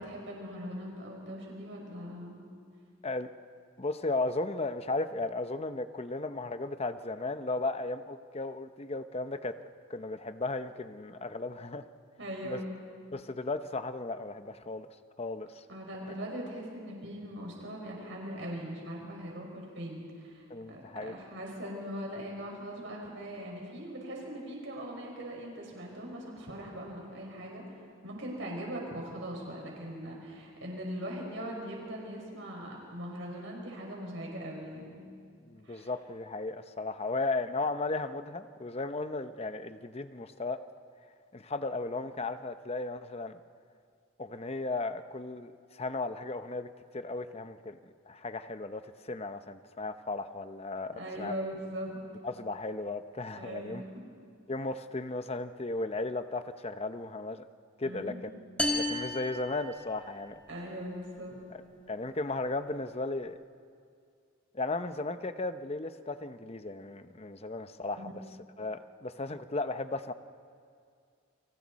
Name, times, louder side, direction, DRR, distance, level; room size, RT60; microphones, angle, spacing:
voice 1, 0.0-2.4 12.2-12.7 15.7-35.0 35.6-35.9 50.9-52.0 53.4-54.0 57.8-58.2 60.5-61.4 68.0-68.1, equal, 65° right, -1 dB, 5.5 m, -40 dB
voice 2, 3.8-9.6 9.9-11.9 12.4-12.6 13.1-14.9 15.2-15.6 20.5-21.1 35.4-40.6 41.3-43.4 44.2-46.7 46.9-47.8 48.1-51.3 52.2-53.8 54.5-57.4 57.8-58.3 58.7-60.4 61.9-63.3 64.5-68.2 68.6-70.1, left 2 dB, 30° left, 10 dB, 0.8 m, -35 dB
sound 1, 58.6-60.3, left 1 dB, 5° left, 1.6 m, -33 dB
29.5 x 24.5 x 4.2 m, 2.3 s
head